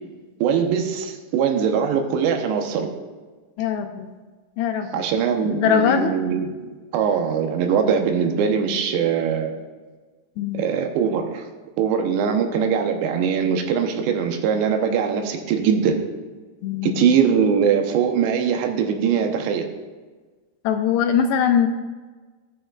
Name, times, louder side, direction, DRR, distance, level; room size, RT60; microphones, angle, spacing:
voice 1, 0.4-2.9 4.9-9.5 10.5-11.5 11.8-16.0 16.8-19.7, right 7 dB, 80° right, 4 dB, 3.1 m, -21 dB
voice 2, 3.6-4.1 4.6-5.1 5.4-6.1 10.4-10.7 16.6-17.2 20.6-21.7, left 8 dB, 80° left, 6 dB, 2.5 m, -22 dB
18.5 x 6.4 x 2.3 m, 1.3 s
omnidirectional pair, 5.0 m